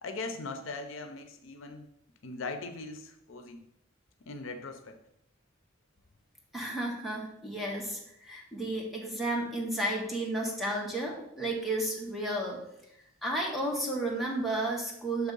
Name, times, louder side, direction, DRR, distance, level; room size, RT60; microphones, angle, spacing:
voice 1, 0.0-1.9 2.2-3.6 4.3-5.0, left 3 dB, 75° left, 7 dB, 0.6 m, -40 dB
voice 2, 6.5-12.6 13.2-15.3, right 1 dB, ahead, -3 dB, 1.3 m, -32 dB
6.1 x 3.6 x 5.3 m, 0.78 s
head